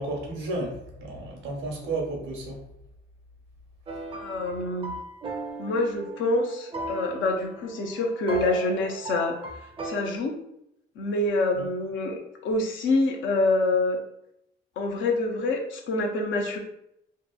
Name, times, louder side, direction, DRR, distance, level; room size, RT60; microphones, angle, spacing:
voice 1, 0.0-2.6 11.6-11.7, right 2 dB, 85° right, 0 dB, 0.8 m, -32 dB
sound 1, 3.9-10.0, right 2 dB, 25° right, 0.4 m, -37 dB
voice 2, 4.1-5.0 5.6-9.4 9.8-10.4 11.0-14.0 14.8-16.6, left 2 dB, 75° left, 3 dB, 0.6 m, -26 dB
2.8 x 2.5 x 2.2 m, 0.79 s
cardioid pair, 90°, 20 cm